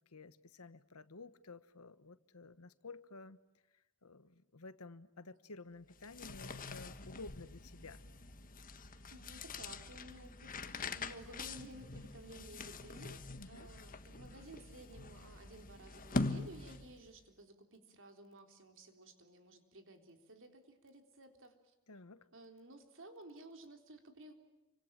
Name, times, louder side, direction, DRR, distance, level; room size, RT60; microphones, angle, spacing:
voice 1, 0.1-3.4 4.0-8.0 13.4-13.7 21.9-22.3, left 3 dB, 75° left, 1.2 m, -52 dB
sound 1, 5.9-17.1, left 3 dB, 40° left, 1.4 m, -44 dB
voice 2, 9.1-21.7 22.3-24.3, right 1 dB, 60° right, 3.8 m, -55 dB
29.0 x 25.0 x 7.5 m
head